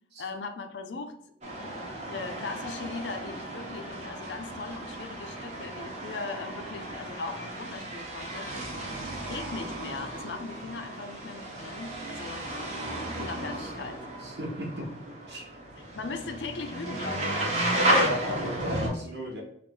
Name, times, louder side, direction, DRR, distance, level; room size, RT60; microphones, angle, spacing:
voice 1, 0.2-1.2 1.6-8.5 9.3-12.5 13.1-14.1 14.7-14.9 16.0-17.5, left 4 dB, 80° left, 7 dB, 0.5 m, -39 dB
sound 1, 1.4-18.9, right 1 dB, 40° right, 0.9 m, -34 dB
voice 2, 14.2-14.8 15.3-15.5 17.7-19.4, left 1 dB, 65° right, -1 dB, 1.0 m, -33 dB
3.2 x 2.5 x 4.4 m, 0.69 s
head